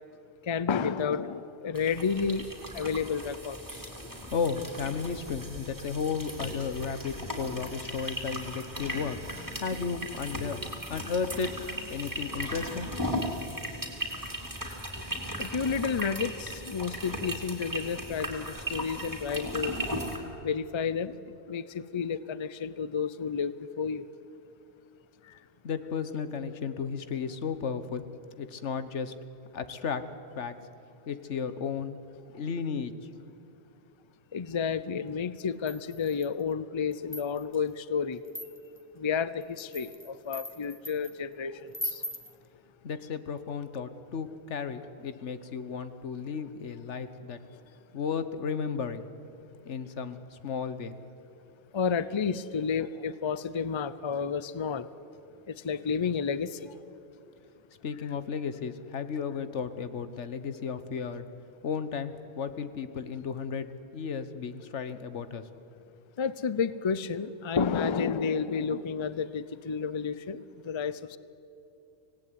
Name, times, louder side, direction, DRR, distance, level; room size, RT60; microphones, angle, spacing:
voice 1, 0.4-2.5 2.7-3.9 15.4-19.8 20.4-24.1 25.2-25.4 34.3-38.2 39.0-42.0 51.7-54.9 55.5-56.8 66.2-71.2, left 6 dB, 30° left, 15 dB, 0.6 m, -31 dB
sound 1, 1.7-20.2, equal, 15° right, 3.1 m, -37 dB
voice 2, 4.0-10.6 10.9-11.5 11.9-12.9 25.6-28.0 28.4-29.1 29.5-30.0 30.4-30.6 31.1-32.0 32.3-32.9 42.8-47.4 47.9-49.1 49.6-51.0 57.8-61.3 61.6-65.5, left 6 dB, 85° left, 11 dB, 1.4 m, -34 dB
sound 2, 35.7-36.4 36.9-37.6 38.2-38.8 39.4-41.1 41.7-42.3, equal, 10° left, 1.4 m, -39 dB
25.5 x 18.0 x 9.4 m, 2.7 s
omnidirectional pair, 1.2 m